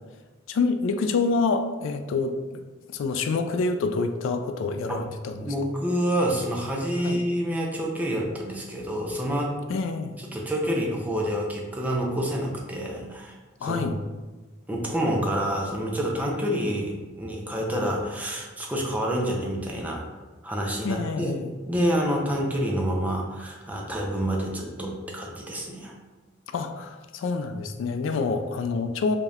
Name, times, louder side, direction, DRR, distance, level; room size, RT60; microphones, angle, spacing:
voice 1, 0.5-2.4 2.9-5.4 7.0-7.2 9.7-10.2 13.6-14.0 20.8-21.5 26.5-29.2, left 4 dB, 80° left, 7 dB, 0.3 m, -27 dB
voice 2, 5.3-9.5 10.2-13.9 14.7-20.1 20.4-21.3 21.7-25.9, equal, 10° right, -1 dB, 0.5 m, -28 dB
4.9 x 2.8 x 2.4 m, 1.3 s
head